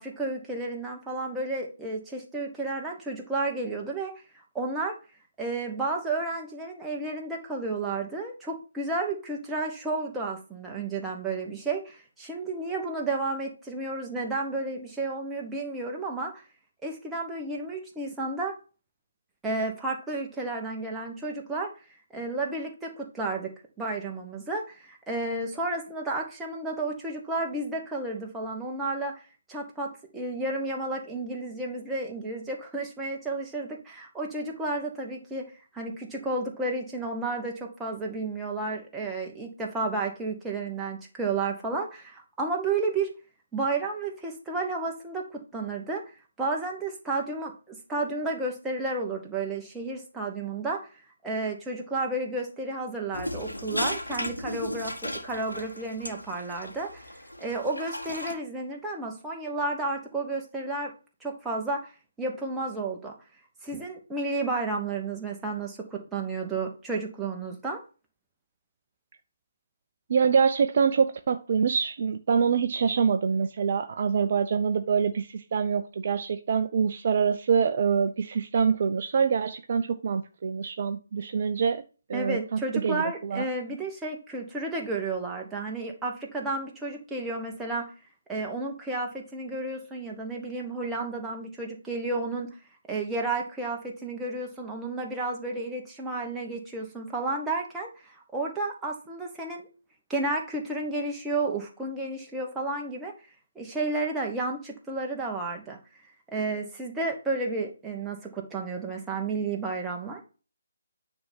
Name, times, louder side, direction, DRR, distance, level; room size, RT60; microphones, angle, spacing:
voice 1, 0.0-4.1 4.5-4.9 5.4-16.3 16.8-18.5 19.4-21.7 22.1-23.5 23.8-29.1 29.5-35.4 35.7-43.1 43.5-46.0 46.4-50.9 51.2-60.9 61.2-61.9 62.2-63.1 63.6-67.8 82.1-87.9 88.3-92.5 92.9-99.7 100.1-103.1 103.5-105.8 106.3-110.2, right 3 dB, 5° right, 1.3 m, -32 dB
sound 1, 53.1-58.3, left 1 dB, 85° left, 1.6 m, -35 dB
voice 2, 70.1-81.8 82.1-83.5, right 6 dB, 40° right, 0.5 m, -25 dB
9.4 x 3.5 x 5.5 m
figure-of-eight pair, 145°, 0 cm